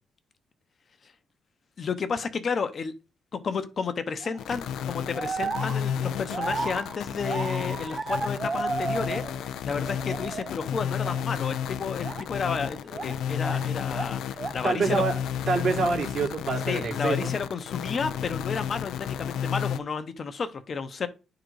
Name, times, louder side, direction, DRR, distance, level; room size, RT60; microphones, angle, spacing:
voice 1, 1.8-2.9 3.3-9.2 9.6-15.0 16.7-21.1, left 5 dB, 45° left, 0.8 m, -32 dB
sound 1, 4.2-4.5 5.1-9.5 9.8-10.6 11.0-11.2 12.0-13.7 13.9-14.7, right 4 dB, 30° right, 0.5 m, -33 dB
sound 2, 4.4-19.8, left 8 dB, 80° left, 0.5 m, -32 dB
voice 2, 14.6-15.1 15.5-17.3, right 4 dB, 55° right, 2.0 m, -26 dB
9.7 x 3.9 x 4.7 m
cardioid pair, 90°, 0 cm